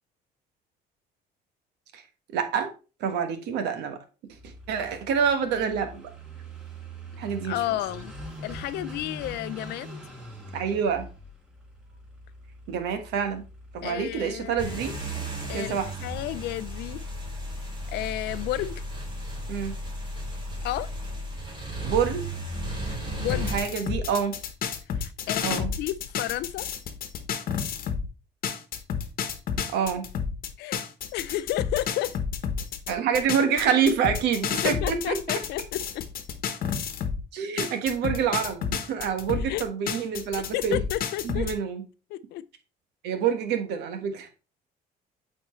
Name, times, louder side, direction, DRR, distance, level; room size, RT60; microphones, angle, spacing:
voice 1, 2.3-2.7 3.0-4.0 4.4-6.1 7.2-7.6 10.5-11.1 12.7-13.4 13.7-14.9 15.5-15.9 19.5-19.7 21.8-22.2 23.3-24.4 25.4-25.7 29.7-30.0 32.9-35.4 37.3-40.8 41.2-41.8 43.0-44.3, right 7 dB, 85° right, 1.2 m, -27 dB
Car passing by / Idling, 4.4-15.0, right 1 dB, 5° right, 4.1 m, -43 dB
voice 2, 7.4-8.1 8.4-10.0 13.8-14.9 15.5-17.0 17.9-18.8 20.6-20.9 23.2-23.5 24.9-26.7 30.6-30.8 31.1-32.1 34.6-36.0 39.3-39.6 40.4-41.5 42.1-42.5, left 14 dB, 75° left, 0.4 m, -32 dB
sound 1, 14.6-23.6, right 1 dB, 30° right, 2.5 m, -34 dB
sound 2, 23.3-28.1 28.4-37.2 37.6-41.5, left 7 dB, 60° left, 1.0 m, -30 dB
8.3 x 4.4 x 3.1 m
cardioid pair, 110°, 17 cm